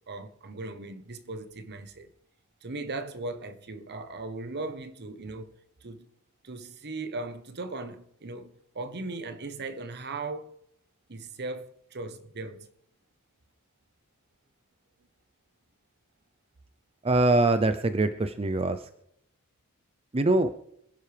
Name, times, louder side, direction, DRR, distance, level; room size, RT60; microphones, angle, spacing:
voice 1, 0.1-2.1 2.6-5.5 5.8-6.1 6.4-10.6 11.1-12.7, right 3 dB, 50° right, 1.1 m, -38 dB
voice 2, 17.0-18.9 20.1-20.5, right 2 dB, 25° right, 0.6 m, -23 dB
26.5 x 10.5 x 3.4 m
head